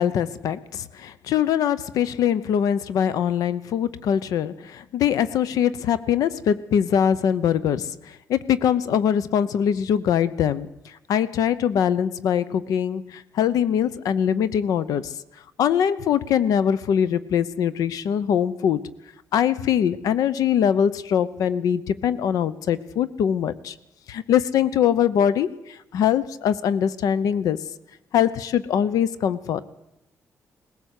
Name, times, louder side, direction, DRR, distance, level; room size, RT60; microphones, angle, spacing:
voice 1, 0.0-15.1 15.6-18.8 19.3-23.7 24.1-27.6 28.1-29.6, left 9 dB, 90° left, 16 dB, 0.8 m, -22 dB
19.5 x 16.5 x 8.2 m, 0.90 s
cardioid pair, 135°, 6 cm